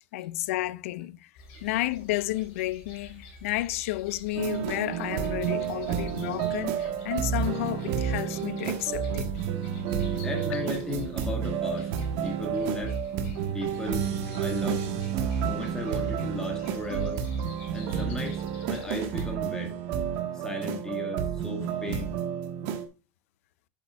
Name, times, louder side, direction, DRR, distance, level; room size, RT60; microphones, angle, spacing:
voice 1, 0.1-1.3 1.6-9.3, left 17 dB, 90° left, 0.5 m, -31 dB
sound 1, 1.3-19.3, left 2 dB, 55° left, 3.7 m, -49 dB
sound 2, 4.3-22.9, right 8 dB, 50° right, 1.3 m, -30 dB
voice 2, 10.2-11.9 12.2-12.9 13.5-14.1 14.4-14.8 15.4-17.2 17.7-19.7 20.3-22.2, left 2 dB, 10° left, 1.9 m, -35 dB
8.2 x 7.0 x 2.3 m
supercardioid pair, 175°, 7 cm